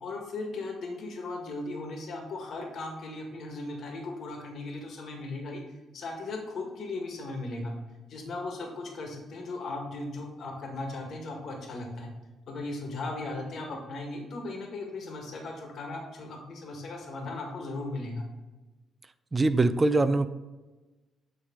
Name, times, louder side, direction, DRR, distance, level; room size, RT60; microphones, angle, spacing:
voice 1, 0.0-5.6 5.9-7.7 8.1-12.1 12.5-18.3, left 2 dB, 60° left, 2 dB, 1.4 m, -37 dB
voice 2, 19.3-20.3, right 2 dB, 25° right, 13 dB, 0.4 m, -23 dB
8.6 x 3.3 x 3.6 m, 1.1 s
cardioid pair, 90°, 0 cm